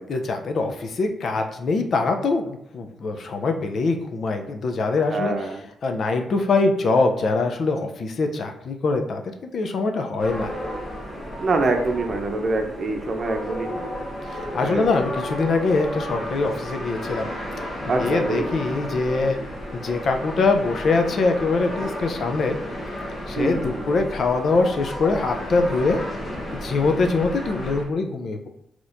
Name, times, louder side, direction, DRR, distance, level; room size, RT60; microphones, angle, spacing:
voice 1, 0.1-5.3 5.8-9.2 9.5-10.5 14.3-17.3 18.0-19.4 19.7-22.6 23.3-26.0 26.5-28.5, left 3 dB, 60° left, 5 dB, 0.5 m, -23 dB
voice 2, 5.1-5.6 11.4-14.0 14.6-14.9 17.9-18.5 23.3-24.0, right 2 dB, 50° right, 4 dB, 0.7 m, -25 dB
sound 1, 10.2-27.9, equal, 35° left, 1.1 m, -33 dB
4.0 x 2.9 x 2.6 m, 0.72 s
cardioid pair, 85°, 0 cm